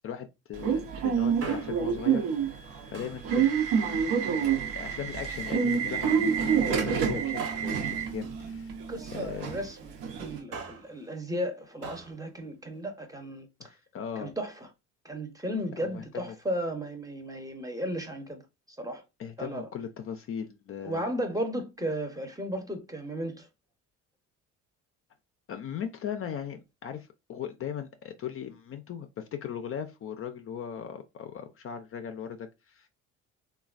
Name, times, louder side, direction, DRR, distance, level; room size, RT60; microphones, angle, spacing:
voice 1, 0.0-2.3 2.9-3.6 4.1-4.2 4.8-8.7 9.1-9.5 13.6-14.3 15.8-16.4 19.2-21.1 25.5-32.9, left 8 dB, 40° left, 0.4 m, -38 dB
Subway metro underground / Alarm, 0.6-10.4, right 7 dB, 75° right, 0.8 m, -28 dB
Male speech man speaking, 1.4-2.0 2.9-3.3 4.1-4.9 6.0-6.4 7.4-9.0 10.3-10.9 11.8-12.1 12.4-12.5, right 5 dB, 45° right, 0.8 m, -43 dB
voice 2, 8.9-13.5 14.2-14.5 15.0-18.4 18.8-19.0 19.4-19.7 20.8-23.5, equal, 10° right, 0.7 m, -34 dB
3.1 x 2.2 x 2.4 m
supercardioid pair, 75°, 34 cm